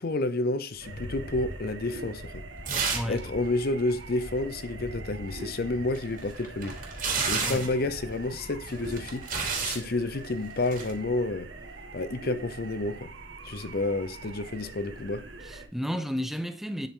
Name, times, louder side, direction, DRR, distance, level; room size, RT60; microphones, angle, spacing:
voice 1, 0.0-2.4 3.1-6.8 7.3-9.3 9.6-11.5 11.9-13.1 13.4-15.2, left 2 dB, 55° left, 0.7 m, -30 dB
Rattle, 0.7-9.2, left 1 dB, 85° left, 1.1 m, -45 dB
sound 1, 0.8-15.7, right 3 dB, 75° right, 1.6 m, -44 dB
sound 2, 2.7-3.2 3.5-3.6 5.9-7.8 8.7-9.8 10.6-10.9, right 5 dB, 45° right, 3.0 m, -30 dB
voice 2, 2.9-3.3 7.4-7.7 15.4-16.9, equal, ahead, 0.7 m, -32 dB
9.2 x 8.4 x 3.8 m
head